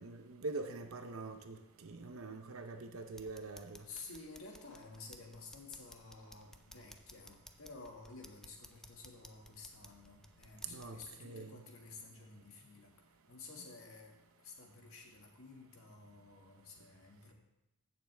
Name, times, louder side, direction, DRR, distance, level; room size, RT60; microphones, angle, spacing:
voice 1, 0.0-3.8 10.6-11.6, right 3 dB, 65° right, 7 dB, 0.7 m, -44 dB
sound 1, 3.1-11.1, left 1 dB, ahead, 0.4 m, -59 dB
voice 2, 3.8-12.9 13.3-14.1 14.4-17.3, left 3 dB, 65° left, 1 dB, 1.9 m, -52 dB
15.0 x 6.7 x 3.4 m, 0.94 s
head